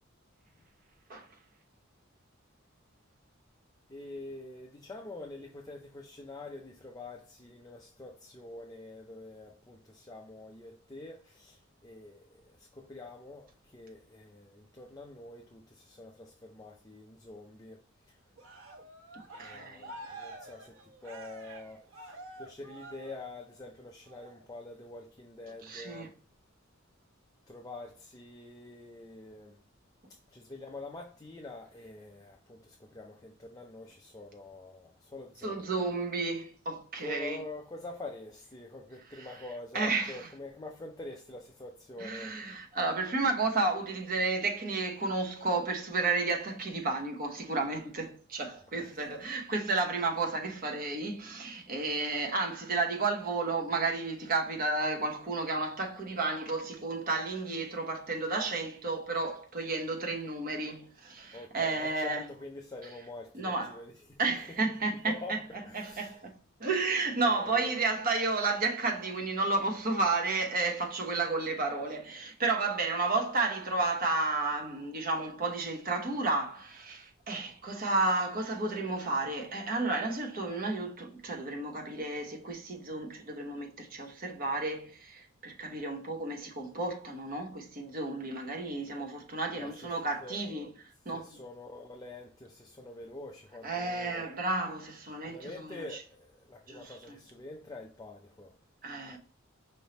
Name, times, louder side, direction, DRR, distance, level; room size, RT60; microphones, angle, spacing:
voice 1, 3.9-17.8 18.1-18.2 19.3-26.1 27.5-29.6 30.3-35.7 37.0-42.4 48.8-49.1 61.3-64.4 65.0-66.2 67.2-67.8 89.6-89.9 90.2-90.4 91.1-94.3 95.3-98.5 99.1-99.2, left 2 dB, 20° left, 0.5 m, -46 dB
Cheering, 18.4-23.6 24.1-24.4, right 2 dB, 80° right, 1.1 m, -48 dB
voice 2, 19.1-19.9 25.6-26.1 35.4-37.4 39.1-39.3 39.7-40.3 42.0-62.2 63.3-63.8 64.2-65.4 65.7-66.3 66.6-90.7 91.0-91.3 93.6-95.9 96.7-97.2 98.8-99.2, right 3 dB, 45° right, 1.0 m, -32 dB
5.3 x 3.3 x 2.9 m
head